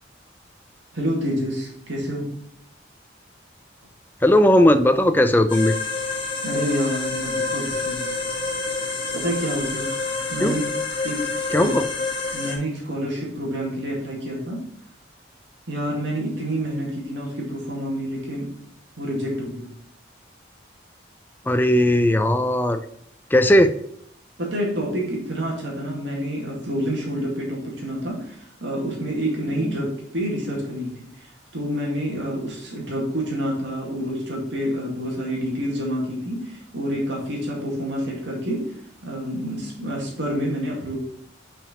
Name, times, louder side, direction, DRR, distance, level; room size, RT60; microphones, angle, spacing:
voice 1, 0.9-2.3 6.4-8.2 9.1-9.9 10.3-10.6 11.0-11.7 12.3-14.6 15.7-18.5 19.0-19.7 24.4-38.7 39.0-41.0, equal, 75° right, -3 dB, 2.1 m, -28 dB
voice 2, 4.2-5.8 10.4-10.6 11.5-11.9 21.5-22.8 23.3-23.8 29.7-29.8, left 1 dB, 10° left, 9 dB, 0.4 m, -17 dB
sound 1, 5.5-12.6, left 3 dB, 25° left, 1.2 m, -28 dB
6.1 x 4.9 x 4.3 m, 0.68 s
head